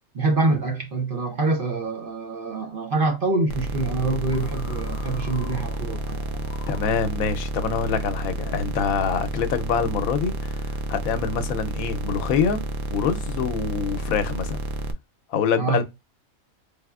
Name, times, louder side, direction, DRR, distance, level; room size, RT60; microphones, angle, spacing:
voice 1, 0.1-6.2 15.6-15.8, right 3 dB, 50° right, 0.7 m, -25 dB
sound 1, 3.5-14.9, right 1 dB, 65° right, 1.0 m, -30 dB
sound 2, 4.2-7.4, left 6 dB, 60° left, 0.5 m, -43 dB
voice 2, 6.7-12.6 12.9-14.6 15.3-15.8, left 6 dB, 80° left, 1.0 m, -25 dB
4.1 x 3.5 x 2.3 m
omnidirectional pair, 1.5 m